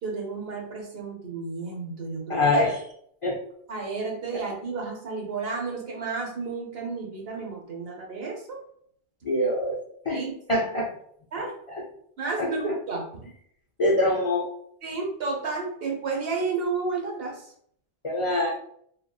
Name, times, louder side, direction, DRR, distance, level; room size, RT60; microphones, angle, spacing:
voice 1, 0.0-2.4 3.7-8.6 10.1-10.3 11.3-11.5 12.2-13.3 14.8-17.4, right 4 dB, 60° right, 0 dB, 0.9 m, -32 dB
voice 2, 2.3-2.9 3.2-3.4 4.3-4.4 9.2-10.2 10.5-10.9 11.7-11.8 12.4-12.7 13.8-14.5 18.0-18.5, left 1 dB, 55° left, -2 dB, 0.3 m, -25 dB
2.9 x 2.7 x 2.3 m, 0.66 s
omnidirectional pair, 1.2 m